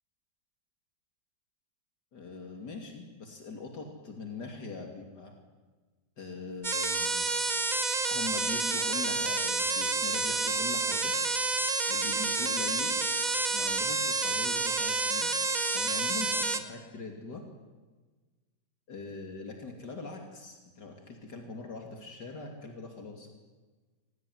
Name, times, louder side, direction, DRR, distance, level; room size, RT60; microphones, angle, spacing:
voice 1, 2.1-5.3 6.2-7.3 8.1-11.1 11.9-13.1 13.5-15.3 15.7-17.4 18.9-23.3, left 4 dB, 75° left, 2 dB, 3.4 m, -42 dB
sound 1, 6.6-16.6, right 3 dB, 25° right, 1.5 m, -29 dB
27.0 x 17.5 x 9.5 m, 1.3 s
omnidirectional pair, 1.8 m